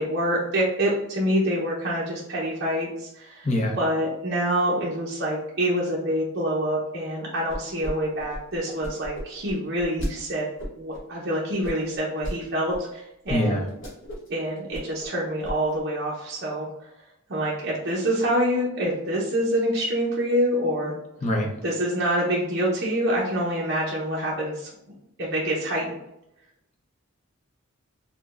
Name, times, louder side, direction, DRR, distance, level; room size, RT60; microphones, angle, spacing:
voice 1, 0.0-3.5 3.8-10.5 10.8-13.7 14.3-16.7 17.3-20.9 21.6-24.7 25.2-25.9, equal, 50° right, -5 dB, 0.7 m, -26 dB
voice 2, 3.4-3.8 13.3-13.6 21.2-21.5, left 1 dB, 35° left, 1 dB, 0.7 m, -23 dB
sound 1, 7.5-7.9 8.2-10.1 10.6-11.0 11.6-12.4 12.7-12.8 13.2-13.4 13.7-14.3 14.6-15.1 15.4-15.8, equal, 60° left, 1.0 m, -34 dB
4.9 x 2.2 x 2.4 m, 0.84 s
head